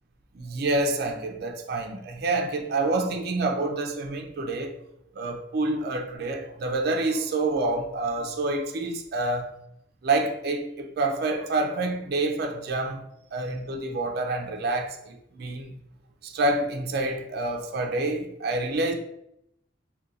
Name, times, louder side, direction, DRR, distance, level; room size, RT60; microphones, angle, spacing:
voice 1, 0.3-4.7 5.2-9.5 10.0-13.0 13.3-15.7 16.2-18.9, right 2 dB, 55° right, 0.4 m, -27 dB
2.5 x 2.2 x 3.8 m
head